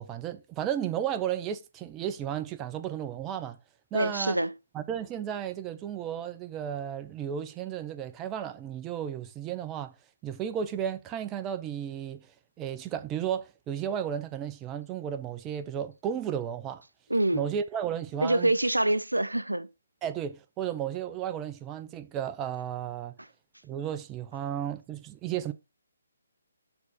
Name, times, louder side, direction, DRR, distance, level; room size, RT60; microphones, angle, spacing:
voice 1, 0.0-3.6 3.9-4.4 4.7-9.9 10.2-12.3 12.6-16.8 17.3-18.5 20.0-23.1 23.6-25.5, right 9 dB, 15° right, 0.7 m, -33 dB
voice 2, 3.9-4.5 17.1-17.4 18.2-19.7, right 1 dB, 90° right, 0.6 m, -25 dB
7.0 x 3.9 x 5.5 m
figure-of-eight pair, 140°, 0 cm